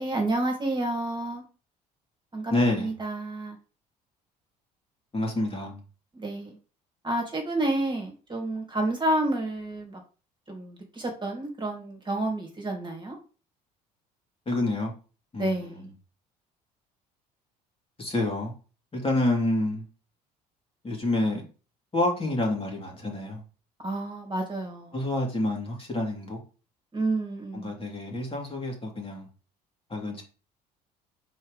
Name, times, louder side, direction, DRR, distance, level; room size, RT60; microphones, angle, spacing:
voice 1, 0.0-1.4 2.3-2.5 2.8-3.6 6.1-6.6 7.0-10.0 10.5-13.2 15.4-15.9 23.8-25.0 26.9-27.7, right 1 dB, 20° right, 2.5 m, -30 dB
voice 2, 2.5-2.9 5.1-5.8 14.5-14.9 15.3-15.9 18.0-18.5 18.9-19.8 20.8-21.4 21.9-23.4 24.9-26.4 27.5-29.3 29.9-30.2, left 1 dB, 25° left, 3.0 m, -28 dB
4.6 x 4.5 x 5.3 m
hypercardioid pair, 55°, 21 cm